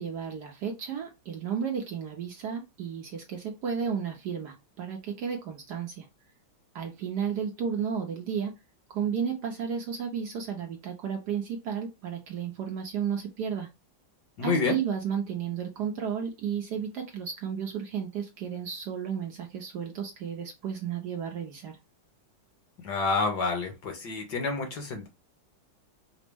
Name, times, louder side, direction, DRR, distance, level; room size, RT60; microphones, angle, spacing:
voice 1, 0.0-6.1 6.7-8.5 8.9-13.7 14.4-21.8, right 7 dB, 70° right, 2 dB, 1.1 m, -33 dB
voice 2, 14.4-14.8 22.8-25.1, left 4 dB, 60° left, 4 dB, 1.4 m, -28 dB
5.0 x 2.0 x 3.4 m, 0.24 s
omnidirectional pair, 2.2 m